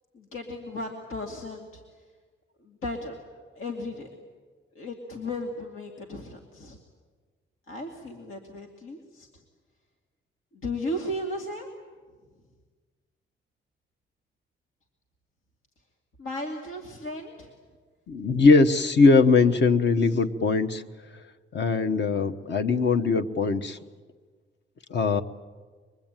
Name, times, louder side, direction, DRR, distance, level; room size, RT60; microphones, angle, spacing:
voice 1, 0.1-1.8 2.6-3.2 3.5-4.1 4.7-6.8 7.7-9.3 10.5-11.7 16.2-17.5, left 1 dB, 85° left, 2 dB, 2.6 m, -35 dB
voice 2, 18.1-20.8 21.5-23.8 24.9-25.2, left 4 dB, 55° left, 7 dB, 1.2 m, -21 dB
25.0 x 23.0 x 9.1 m, 1.5 s
wide cardioid pair, 140°, 21 cm